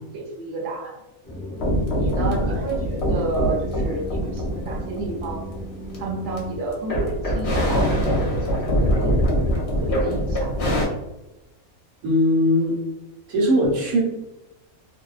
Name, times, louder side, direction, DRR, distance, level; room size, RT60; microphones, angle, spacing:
voice 1, 0.1-1.0 1.6-5.5 6.0-9.2 9.8-10.5, right 3 dB, 60° right, -2 dB, 0.9 m, -31 dB
sound 1, 1.2-6.6, equal, 15° left, 0.4 m, -35 dB
sound 2, 1.6-6.4 6.7-10.9, equal, 55° left, 0.8 m, -23 dB
voice 2, 2.2-2.6 12.0-12.8 13.3-14.0, equal, 80° right, -3 dB, 1.2 m, -20 dB
2.6 x 2.1 x 2.3 m, 0.96 s
omnidirectional pair, 1.5 m